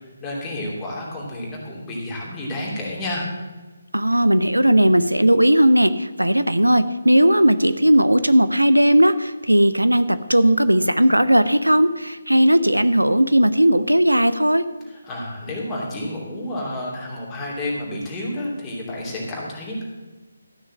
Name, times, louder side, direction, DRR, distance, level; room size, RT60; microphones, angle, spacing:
voice 1, 0.0-3.3 14.8-19.8, left 1 dB, 15° left, -4 dB, 2.9 m, -30 dB
voice 2, 3.9-14.6, right 1 dB, 80° right, 13 dB, 0.7 m, -17 dB
13.0 x 6.4 x 7.5 m, 1.2 s
figure-of-eight pair, 150°, 0 cm